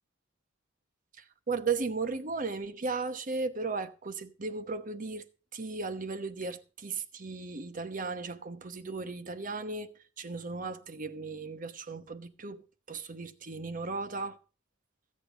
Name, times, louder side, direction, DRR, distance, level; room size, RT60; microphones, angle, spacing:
voice 1, 1.2-5.3 5.5-14.4, right 4 dB, 40° right, 1.0 m, -36 dB
15.5 x 8.4 x 5.0 m
head